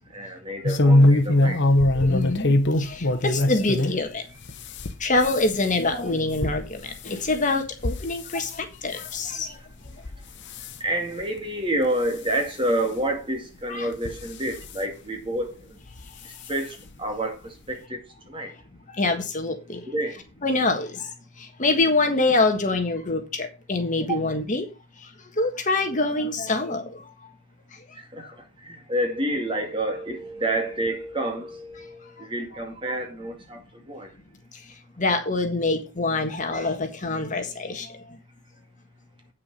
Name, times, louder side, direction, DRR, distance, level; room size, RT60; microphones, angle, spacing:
voice 1, 0.1-1.6 8.3-8.4 9.3-10.0 10.8-15.8 16.2-18.0 18.3-18.5 19.9-20.2 24.1-24.2 27.9-34.1, right 1 dB, 25° right, 2.2 m, -29 dB
sound 1, 0.6-4.0 4.4-8.6 8.9-9.3 9.8-10.2 10.5-10.8 11.4-11.5 11.8-11.9 13.1-13.2 13.9-14.7 15.9-16.1 16.4-16.5 16.9-17.0, left 1 dB, 55° left, 1.0 m, -22 dB
voice 2, 2.0-4.2 5.0-8.5 8.8-9.5 13.7-13.9 19.0-19.8 20.4-21.1 21.6-24.6 25.4-26.9 28.2-28.3 35.0-37.9, left 3 dB, 35° left, 1.5 m, -25 dB
8.7 x 6.7 x 5.3 m
head